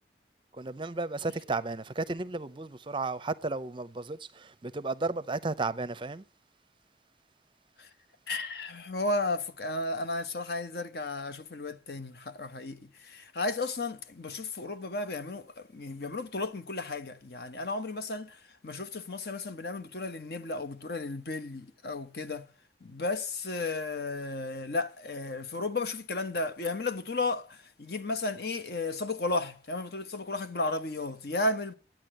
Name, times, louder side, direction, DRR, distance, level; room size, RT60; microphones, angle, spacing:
voice 1, 0.5-6.2, right 3 dB, 30° right, 0.5 m, -33 dB
voice 2, 8.3-22.5 22.8-31.7, left 2 dB, 60° left, 1.0 m, -34 dB
12.0 x 9.0 x 7.8 m
head